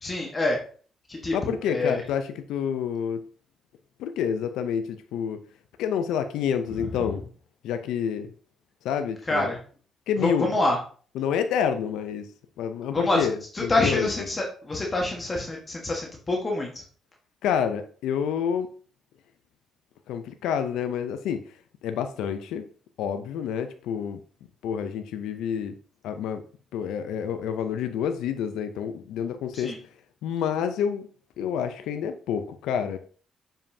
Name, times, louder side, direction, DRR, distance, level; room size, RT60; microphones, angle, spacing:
voice 1, 0.0-0.6 1.1-2.0 9.3-9.6 10.2-10.7 12.9-13.2 13.7-16.7 29.6-29.8, left 2 dB, 30° left, 0 dB, 1.3 m, -26 dB
voice 2, 1.3-3.2 4.0-5.4 5.8-7.2 7.6-8.3 8.8-9.5 10.1-10.6 11.1-12.3 12.6-14.3 17.4-18.7 20.1-21.4 21.8-22.6 23.0-24.2 24.6-25.7 26.0-26.4 26.7-29.8 30.2-31.1 31.4-33.0, left 8 dB, 90° left, 9 dB, 0.5 m, -28 dB
7.0 x 5.4 x 2.7 m, 0.42 s
cardioid pair, 90°, 0 cm